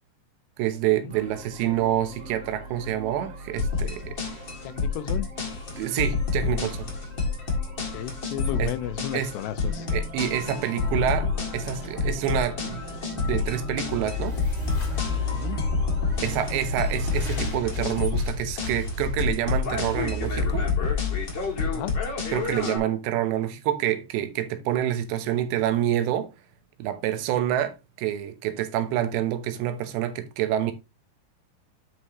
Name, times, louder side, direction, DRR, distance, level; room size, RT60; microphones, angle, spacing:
voice 1, 0.6-4.2 5.8-6.9 8.6-8.7 9.1-9.3 9.9-12.8 13.1-14.4 16.2-20.7 22.3-26.3 26.8-30.7, right 11 dB, 90° right, 3.3 m, -27 dB
sound 1, 1.1-18.6, right 2 dB, 25° right, 1.5 m, -42 dB
sound 2, 3.6-22.8, left 4 dB, 40° left, 1.6 m, -29 dB
voice 2, 4.6-5.3 7.8-9.9 15.3-15.6 21.7-22.0, left 12 dB, 80° left, 2.8 m, -34 dB
sound 3, 13.1-22.3, left 3 dB, 25° left, 1.7 m, -32 dB
9.9 x 5.4 x 3.0 m
omnidirectional pair, 4.9 m